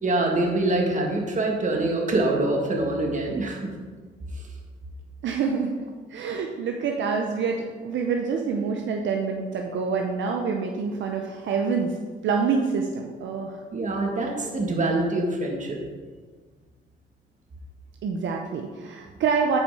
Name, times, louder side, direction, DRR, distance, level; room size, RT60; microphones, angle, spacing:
voice 1, 0.0-3.6 13.7-15.8, right 2 dB, 40° right, 1 dB, 1.8 m, -24 dB
voice 2, 5.2-5.7 6.1-12.0 12.2-13.6 18.0-19.6, right 5 dB, 70° right, 2 dB, 0.8 m, -26 dB
8.3 x 5.3 x 4.9 m, 1.5 s
cardioid pair, 90°, 20 cm